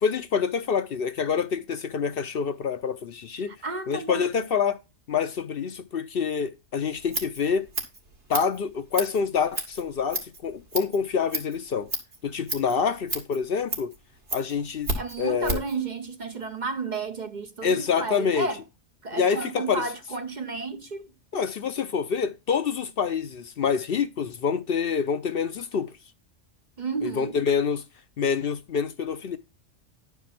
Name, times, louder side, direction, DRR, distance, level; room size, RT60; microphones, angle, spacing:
voice 1, 0.0-3.5 3.9-4.8 5.1-7.7 8.3-11.9 12.2-13.9 14.3-14.9 15.2-15.6 17.6-18.5 19.1-19.8 21.3-26.0 27.0-27.8 28.2-29.4, left 6 dB, 60° left, 0.8 m, -26 dB
voice 2, 3.4-4.3 14.9-18.6 19.0-21.1 26.8-27.4, right 4 dB, 45° right, 0.8 m, -32 dB
Scissors, 6.9-15.8, right 2 dB, 65° right, 2.5 m, -34 dB
11.0 x 4.7 x 5.7 m
omnidirectional pair, 1.2 m